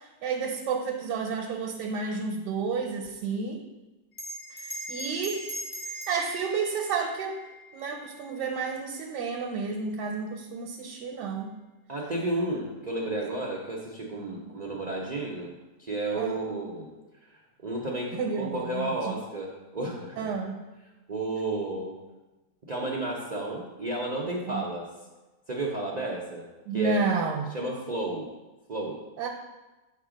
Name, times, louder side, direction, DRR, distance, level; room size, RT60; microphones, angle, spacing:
voice 1, 0.2-3.6 4.9-5.5 6.1-7.4 7.7-11.5 14.3-14.4 16.1-16.6 18.2-19.1 20.2-20.7 24.5-24.6 26.7-27.4 29.2-29.3, right 4 dB, 80° right, 2 dB, 1.2 m, -31 dB
Bell, 4.1-9.0, right 1 dB, 40° left, 0.7 m, -41 dB
voice 2, 11.9-15.5 15.8-16.9 17.2-20.3 21.1-22.0 22.7-24.9 25.5-26.4 26.7-27.0 27.3-28.3 28.7-29.0, right 2 dB, 65° right, -2 dB, 0.4 m, -32 dB
6.8 x 3.3 x 5.0 m, 1.1 s
omnidirectional pair, 1.8 m